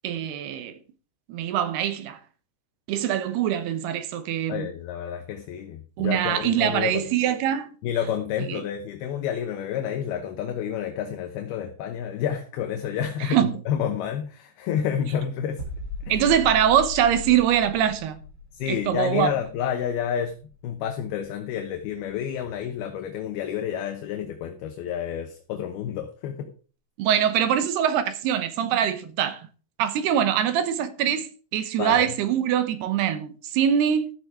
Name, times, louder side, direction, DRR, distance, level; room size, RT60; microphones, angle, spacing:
voice 1, 0.0-0.8 1.3-2.2 2.9-4.7 6.0-7.7 8.5-8.6 13.2-13.5 16.1-18.2 18.7-19.3 27.0-29.5 29.8-34.1, right 10 dB, 75° right, 2.9 m, -23 dB
voice 2, 4.5-7.1 7.8-15.6 16.0-16.3 18.5-20.3 20.6-26.5 31.8-32.1, left 9 dB, 75° left, 2.7 m, -29 dB
sound 1, 15.6-21.3 21.5-21.8, left 3 dB, 35° right, 3.1 m, -38 dB
13.5 x 6.9 x 4.8 m
omnidirectional pair, 4.9 m